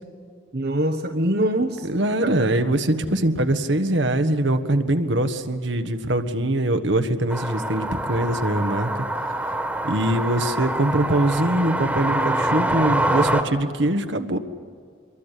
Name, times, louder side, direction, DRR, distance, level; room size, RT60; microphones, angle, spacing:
voice 1, 0.5-2.5, right 1 dB, 55° right, 6 dB, 1.0 m, -24 dB
voice 2, 1.9-9.1 9.8-14.4, right 1 dB, 75° right, 9 dB, 1.4 m, -23 dB
sound 1, 7.3-13.4, right 1 dB, 10° right, 1.7 m, -25 dB
25.0 x 23.0 x 8.4 m, 2.1 s
head